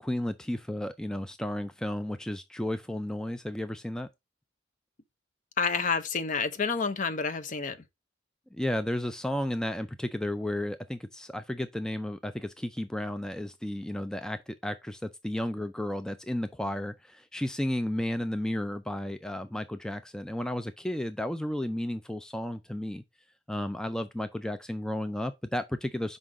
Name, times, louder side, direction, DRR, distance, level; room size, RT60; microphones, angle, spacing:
voice 1, 0.0-4.1 8.5-23.0 23.5-26.2, left 1 dB, 5° left, 0.3 m, -33 dB
voice 2, 5.6-7.8, left 5 dB, 45° left, 0.6 m, -29 dB
5.3 x 3.8 x 4.7 m
head